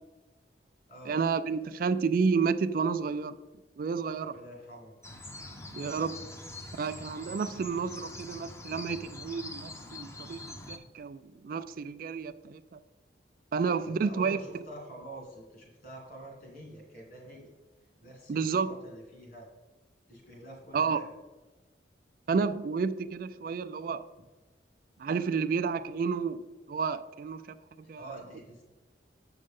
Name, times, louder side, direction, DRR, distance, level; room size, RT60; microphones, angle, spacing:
voice 1, 1.1-3.3 3.8-4.4 5.7-6.2 6.8-12.8 13.5-14.4 18.3-18.7 20.7-21.0 22.3-24.0 25.0-26.4 26.7-28.1, right 5 dB, 50° right, 12 dB, 0.3 m, -31 dB
voice 2, 4.3-4.9 13.8-17.5 18.0-19.5 20.1-21.0 27.8-28.6, right 1 dB, 55° left, -1 dB, 2.6 m, -47 dB
sound 1, 5.0-10.8, left 2 dB, 15° left, 0.6 m, -44 dB
7.7 x 6.4 x 3.6 m, 1.2 s
head